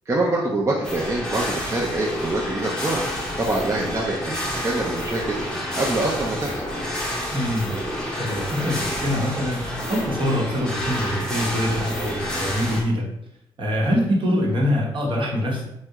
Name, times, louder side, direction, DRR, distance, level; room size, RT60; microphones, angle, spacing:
voice 1, 0.1-3.0 3.4-5.4 5.8-6.6, right 2 dB, 30° right, -3 dB, 0.5 m, -25 dB
sound 1, 0.8-12.8, equal, 5° left, 0.7 m, -29 dB
voice 2, 7.3-7.8 8.2-13.0 13.6-15.7, equal, 55° right, -2 dB, 0.9 m, -24 dB
2.8 x 2.1 x 3.4 m, 0.84 s
cardioid pair, 80°, 10 cm